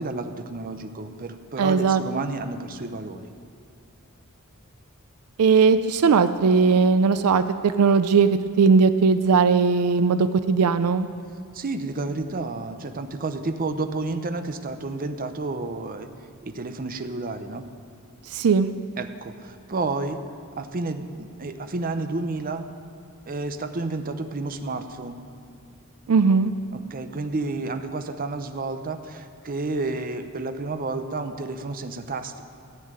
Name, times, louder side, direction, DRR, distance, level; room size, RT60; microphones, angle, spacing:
voice 1, 0.0-3.3 11.5-16.1 16.4-17.6 19.0-20.2 20.6-22.6 23.3-25.2 26.7-32.4, right 3 dB, 40° right, 8 dB, 0.7 m, -31 dB
voice 2, 1.6-2.0 5.4-11.1 18.3-18.7 26.1-26.5, right 5 dB, 85° right, 12 dB, 0.4 m, -19 dB
14.5 x 5.6 x 8.8 m, 2.5 s
head